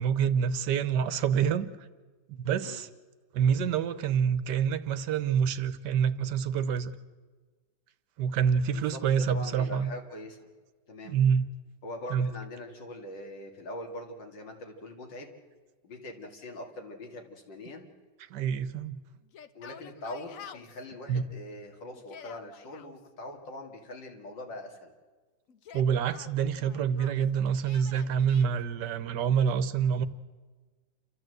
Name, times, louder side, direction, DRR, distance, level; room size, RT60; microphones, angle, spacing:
voice 1, 0.0-1.9 2.3-2.9 3.3-6.9 8.2-9.9 11.0-11.5 12.1-12.3 18.3-19.0 21.1-21.3 25.7-30.1, right 7 dB, 75° right, 13 dB, 1.4 m, -27 dB
voice 2, 8.7-10.4 10.9-11.2 11.8-15.3 15.8-17.9 19.5-24.9, left 1 dB, 85° left, 3 dB, 3.0 m, -42 dB
Yell, 19.2-20.8 21.9-22.9 25.5-27.2 27.6-28.5, left 8 dB, 55° left, 1.0 m, -49 dB
28.5 x 13.5 x 7.8 m, 1.4 s
omnidirectional pair, 1.9 m